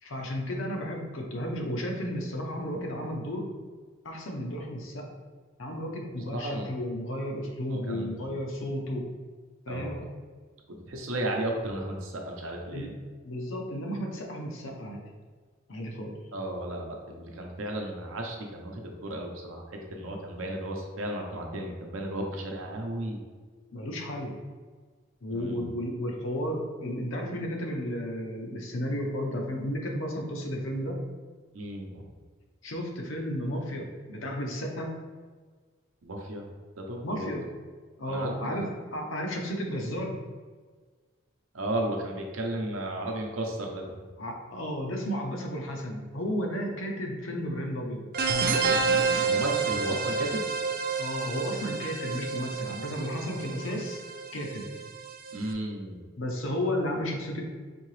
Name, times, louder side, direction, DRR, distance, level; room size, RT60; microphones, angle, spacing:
voice 1, 0.0-3.5 4.0-5.1 5.6-9.0 9.7-10.0 12.7-12.9 13.2-15.0 15.7-16.2 23.7-24.3 25.2-31.0 32.6-34.9 37.0-37.4 38.0-38.7 38.9-40.2 44.2-48.0 51.0-54.0 54.3-54.6 56.2-57.4, equal, 80° left, 1 dB, 0.7 m, -33 dB
voice 2, 6.3-6.7 7.7-8.3 9.7-10.0 10.7-12.9 16.3-23.2 25.3-25.7 31.5-32.0 36.0-36.5 36.8-37.3 38.1-38.7 41.5-44.0 49.2-50.5 55.3-56.0, right 1 dB, 85° right, 1 dB, 0.7 m, -34 dB
sound 1, 48.1-55.5, right 5 dB, 45° right, 0.4 m, -29 dB
4.4 x 2.8 x 3.2 m, 1.5 s
head